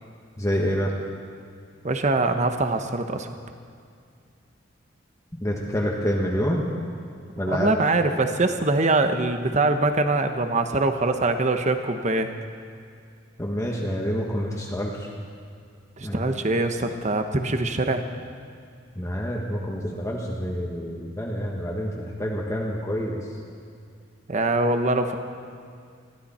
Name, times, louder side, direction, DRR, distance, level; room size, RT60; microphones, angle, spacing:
voice 1, 0.4-0.9 5.4-6.7 7.3-7.7 13.4-15.1 16.0-16.2 18.9-23.3, equal, 15° left, -2 dB, 1.4 m, -27 dB
voice 2, 1.8-3.3 7.5-12.3 16.0-18.0 24.3-25.2, right 2 dB, 40° right, 7 dB, 1.0 m, -23 dB
22.0 x 15.0 x 4.3 m, 2.2 s
head